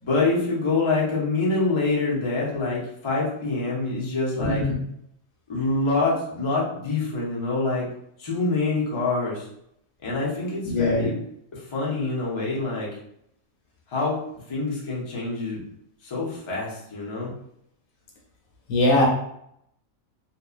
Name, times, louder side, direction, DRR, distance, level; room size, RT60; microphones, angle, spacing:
voice 1, 0.0-4.6 5.5-7.9 8.2-9.5 10.0-11.2 11.5-12.9 13.9-14.2 14.5-15.6 16.0-17.3, left 3 dB, 30° left, -5 dB, 0.5 m, -26 dB
voice 2, 4.4-4.7 10.6-11.1 18.7-19.1, left 1 dB, 80° left, -1 dB, 1.1 m, -21 dB
2.8 x 2.2 x 2.3 m, 0.74 s
omnidirectional pair, 1.4 m